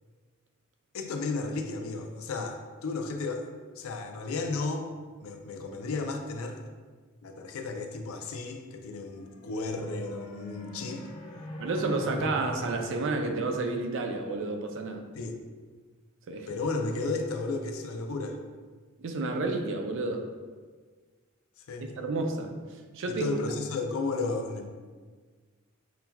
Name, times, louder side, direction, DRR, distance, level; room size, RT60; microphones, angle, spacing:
voice 1, 0.9-3.4 3.8-4.9 5.2-6.6 7.2-11.0 15.1-15.3 16.5-18.4 21.7-21.9 23.1-24.7, left 3 dB, 80° left, 4 dB, 0.4 m, -33 dB
sound 1, 9.0-14.5, equal, 20° left, 0.5 m, -43 dB
voice 2, 11.6-15.0 16.3-16.5 19.0-20.3 21.8-22.5 22.9-23.3, right 3 dB, 65° right, 4 dB, 0.4 m, -30 dB
5.7 x 2.2 x 2.2 m, 1.5 s
head